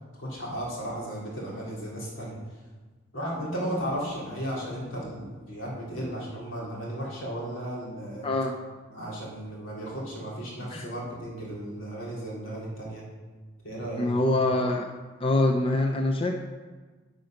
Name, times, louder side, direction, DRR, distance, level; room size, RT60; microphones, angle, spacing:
voice 1, 0.2-2.4 3.1-8.3 8.9-13.0 13.6-14.1, equal, 80° left, -5 dB, 3.2 m, -35 dB
voice 2, 14.0-14.9 15.2-16.3, left 2 dB, 30° left, 2 dB, 0.6 m, -24 dB
10.0 x 5.2 x 5.9 m, 1.4 s
head